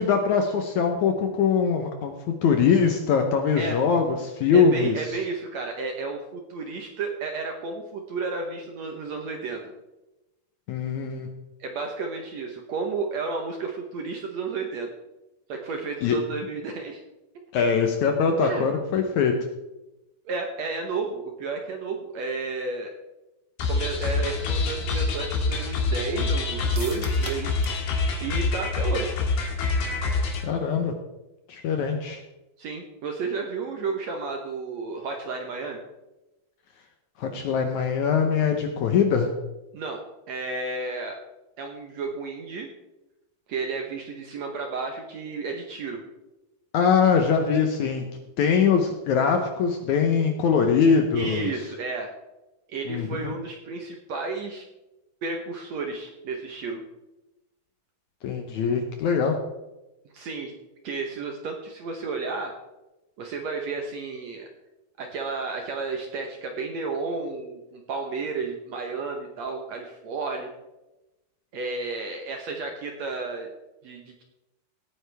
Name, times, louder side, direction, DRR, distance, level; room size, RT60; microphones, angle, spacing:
voice 1, 0.0-2.1 2.4-5.2 10.7-11.3 16.0-16.2 17.5-19.3 30.4-30.9 31.5-32.2 37.2-39.3 46.7-48.0 48.4-51.5 52.9-53.3 58.2-59.4, left 6 dB, 70° left, 5 dB, 1.9 m, -22 dB
voice 2, 4.5-9.7 11.6-14.9 15.5-17.0 18.4-18.7 20.3-22.9 23.7-27.5 28.2-29.1 32.6-35.8 39.7-40.0 40.3-41.2 41.6-42.7 43.5-46.0 51.2-52.1 52.7-54.6 55.2-56.8 60.1-60.5 60.8-62.5 63.2-64.5 65.0-70.5 71.5-73.5 73.8-74.2, right 4 dB, 65° right, 3 dB, 1.8 m, -32 dB
sound 1, 23.6-30.4, left 3 dB, 90° left, 3.9 m, -26 dB
sound 2, 26.7-27.9 28.1-28.2 28.6-28.7, right 5 dB, 80° right, 0.9 m, -41 dB
17.5 x 9.5 x 3.4 m, 0.99 s
omnidirectional pair, 4.3 m